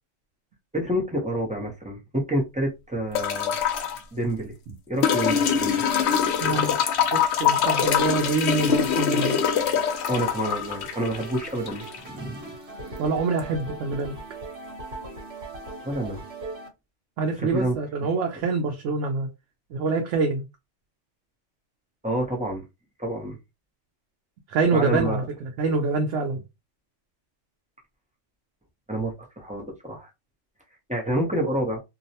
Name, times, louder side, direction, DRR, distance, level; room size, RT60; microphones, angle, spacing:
voice 1, 0.7-3.6 4.1-4.5 4.9-5.8 10.1-12.5 15.8-16.2 17.4-17.7 22.0-22.7 23.0-23.4 24.7-25.2 28.9-30.1 30.9-31.8, right 1 dB, 10° right, 0.5 m, -28 dB
sound 1, 3.1-4.0 5.0-12.0 13.4-13.5, left 8 dB, 65° left, 0.8 m, -23 dB
voice 2, 6.4-6.8 7.1-9.4 13.0-14.2 17.2-19.3 19.7-20.4 24.5-26.4, right 3 dB, 80° right, 0.9 m, -25 dB
sound 2, 8.7-16.7, right 2 dB, 60° right, 1.3 m, -40 dB
2.6 x 2.1 x 2.7 m
omnidirectional pair, 1.2 m